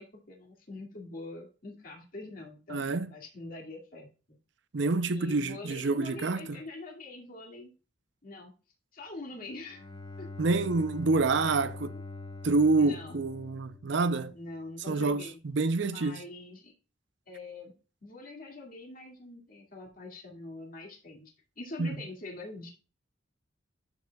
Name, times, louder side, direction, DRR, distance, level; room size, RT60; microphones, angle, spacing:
voice 1, 0.0-4.4 5.1-7.7 8.2-8.5 8.9-9.8 10.2-10.3 11.4-11.6 12.8-13.2 14.3-15.4 15.8-16.7 17.3-17.7 18.0-22.7, left 2 dB, 50° left, 2.1 m, -44 dB
voice 2, 2.7-3.1 4.7-6.6 10.4-11.9 12.4-14.4 14.9-16.2 21.8-22.0, right 3 dB, 70° right, 0.6 m, -27 dB
Bowed string instrument, 9.5-14.5, left 3 dB, 25° left, 0.9 m, -44 dB
12.5 x 4.8 x 2.3 m
head